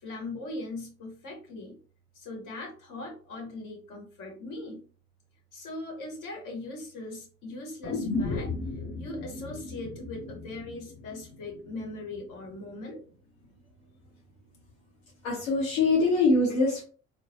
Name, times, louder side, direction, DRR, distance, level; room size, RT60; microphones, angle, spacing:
voice 1, 0.0-1.7 2.1-4.8 5.5-8.5 8.9-13.0, left 2 dB, 50° left, 0 dB, 1.2 m, -40 dB
sound 1, 7.8-11.9 12.2-12.3, left 3 dB, 30° left, 0.5 m, -35 dB
voice 2, 15.2-16.8, left 3 dB, 75° left, -3 dB, 0.7 m, -23 dB
3.0 x 2.0 x 2.6 m, 0.40 s
figure-of-eight pair, 50°, 40 cm